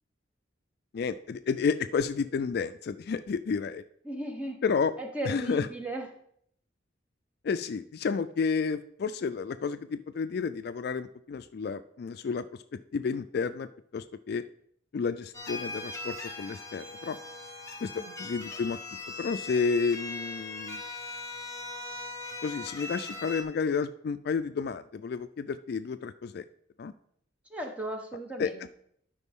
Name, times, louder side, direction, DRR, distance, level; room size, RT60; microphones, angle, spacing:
voice 1, 0.9-3.8 4.6-4.9 5.2-5.7 7.4-12.4 12.9-14.4 14.9-17.2 17.8-18.8 19.2-20.8 22.4-26.4 26.8-26.9 28.4-28.7, left 5 dB, 55° left, 12 dB, 0.3 m, -31 dB
voice 2, 4.0-4.6 5.0-6.0 17.9-18.1 27.5-28.7, right 1 dB, 5° right, 2 dB, 1.1 m, -36 dB
sound 1, 15.3-23.4, left 3 dB, 15° left, 1.1 m, -40 dB
12.0 x 5.1 x 3.6 m, 0.67 s
head